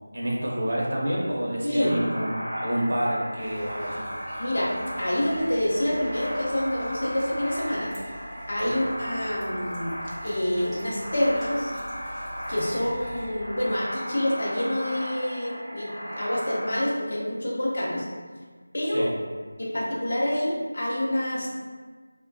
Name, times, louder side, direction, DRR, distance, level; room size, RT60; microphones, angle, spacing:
voice 1, 0.1-4.0 8.6-8.8 18.9-19.1, right 1 dB, 50° right, -3 dB, 0.5 m, -28 dB
voice 2, 1.6-2.0 4.4-4.7 5.0-7.9 8.5-11.7 12.5-18.1 18.7-19.1 19.6-21.5, left 1 dB, 55° left, -5 dB, 0.6 m, -27 dB
sound 1, 1.8-16.8, equal, 30° left, 0.9 m, -36 dB
sound 2, 3.4-13.3, right 1 dB, ahead, 0.4 m, -44 dB
2.3 x 2.2 x 2.5 m, 1.5 s
figure-of-eight pair, 170°, 0 cm